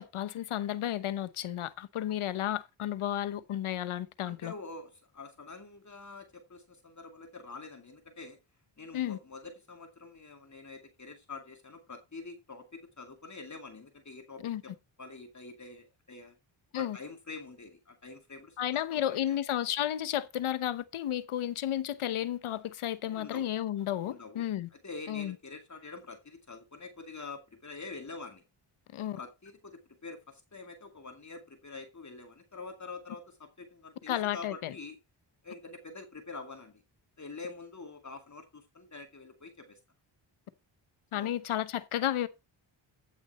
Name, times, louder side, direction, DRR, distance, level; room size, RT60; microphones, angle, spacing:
voice 1, 0.0-4.5 8.9-9.2 14.4-14.6 16.7-17.0 18.6-24.7 25.1-25.3 28.9-29.2 34.1-34.7 41.1-42.3, left 11 dB, 85° left, 1.0 m, -32 dB
voice 2, 4.2-8.4 8.8-14.4 15.0-16.4 16.8-19.4 23.1-23.5 24.1-24.5 24.7-28.4 29.2-35.0 35.4-36.8 37.2-39.8 41.1-41.3, left 3 dB, 35° left, 2.3 m, -46 dB
14.0 x 6.1 x 4.1 m
cardioid pair, 70°, 48 cm